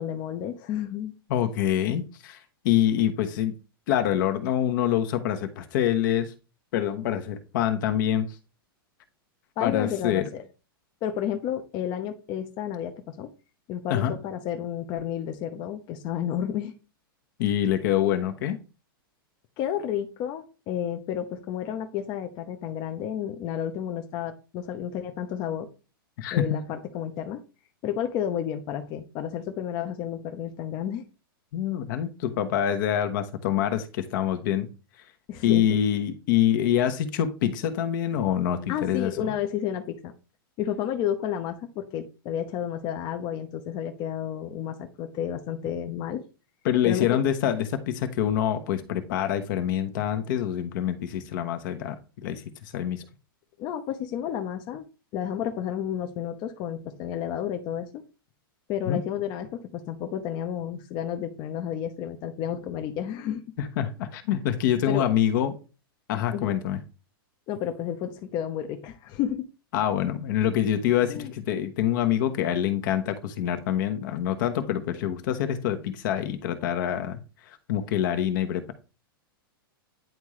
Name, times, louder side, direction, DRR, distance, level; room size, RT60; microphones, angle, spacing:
voice 1, 0.0-1.2 9.6-10.4 11.0-13.3 13.7-16.7 19.6-25.7 26.3-27.4 27.8-31.0 35.3-35.8 38.7-40.1 40.6-46.2 46.8-47.2 53.6-54.8 55.1-58.0 58.7-63.4 64.9-65.1 66.3-66.5 67.5-69.5 71.1-71.3, left 9 dB, 40° left, 0.9 m, -31 dB
voice 2, 1.3-2.4 2.6-3.5 3.9-6.3 6.7-8.3 9.6-10.3 13.9-14.1 17.4-18.6 26.2-26.6 31.5-34.7 35.4-39.3 46.6-52.4 52.7-53.0 58.9-59.0 63.6-65.5 66.1-66.8 69.7-77.2 77.7-78.7, left 10 dB, 60° left, 1.1 m, -25 dB
10.5 x 3.6 x 3.2 m
hypercardioid pair, 120°, 12 cm